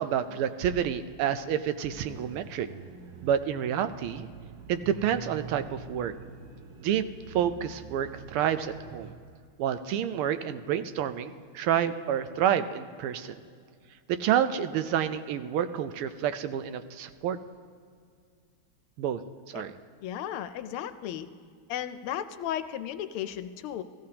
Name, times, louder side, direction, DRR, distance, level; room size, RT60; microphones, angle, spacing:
voice 1, 0.0-2.7 3.2-4.3 4.7-6.1 6.8-9.1 9.6-13.4 14.1-17.4 19.0-19.2 19.5-19.7, right 9 dB, 90° right, 11 dB, 1.5 m, -29 dB
sound 1, 1.9-9.2, right 5 dB, 65° right, 1.4 m, -46 dB
voice 2, 20.0-21.3 21.7-23.8, left 10 dB, 85° left, 12 dB, 1.5 m, -34 dB
16.5 x 14.5 x 2.9 m, 2.1 s
omnidirectional pair, 2.3 m